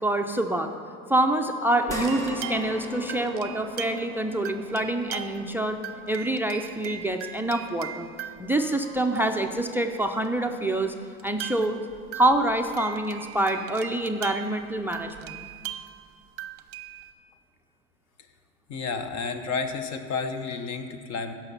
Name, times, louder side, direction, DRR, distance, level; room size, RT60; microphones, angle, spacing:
voice 1, 0.0-0.7 1.1-5.8 6.1-8.1 8.4-10.9 11.2-11.8 12.1-15.4, right 1 dB, 5° right, 6 dB, 0.3 m, -26 dB
sound 1, 1.9-10.5 10.9-11.0 12.5-12.6, equal, 10° left, 1.8 m, -40 dB
sound 2, 2.0-4.1 4.4-5.6 5.8-9.6 10.2-10.3 11.2-17.1, right 12 dB, 40° right, 0.7 m, -40 dB
voice 2, 18.7-21.3, left 5 dB, 50° left, 8 dB, 1.1 m, -31 dB
16.0 x 5.9 x 5.6 m, 2.2 s
supercardioid pair, 120°, 36 cm